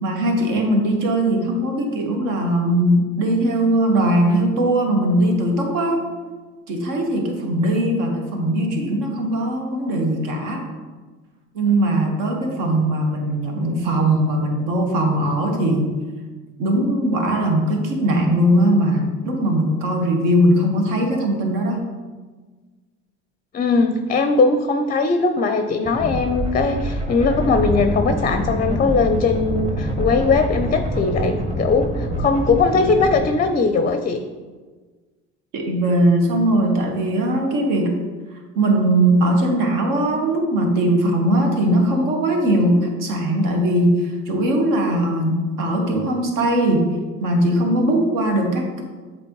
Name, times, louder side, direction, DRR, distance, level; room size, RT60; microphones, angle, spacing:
voice 1, 0.0-6.0 6.7-10.6 11.5-15.9 16.6-21.8 35.5-38.0 38.5-48.8, right 1 dB, 70° right, 2 dB, 1.3 m, -20 dB
voice 2, 23.5-34.2, left 4 dB, 25° left, 7 dB, 0.5 m, -19 dB
sound 1, 25.8-33.2, right 1 dB, 20° right, 1.3 m, -25 dB
7.5 x 4.2 x 3.0 m, 1.4 s
hypercardioid pair, 70°, 34 cm